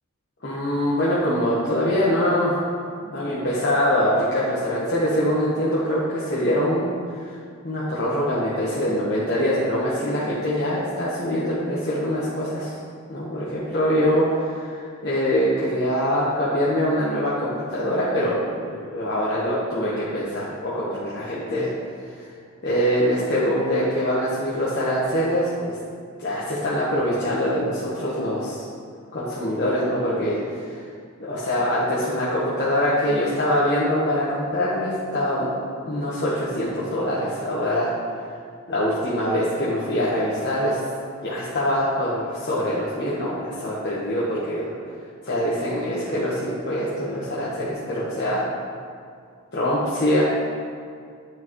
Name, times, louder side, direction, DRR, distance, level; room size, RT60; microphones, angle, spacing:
voice 1, 0.4-2.6 3.1-7.4 7.6-12.8 13.1-21.7 22.1-22.2 22.6-25.8 26.2-28.6 29.1-30.8 31.2-35.5 35.8-37.9 38.7-40.8 41.2-44.7 45.2-48.4 49.5-50.2, equal, 50° left, -8 dB, 1.2 m, -24 dB
9.6 x 6.2 x 3.1 m, 2.3 s
head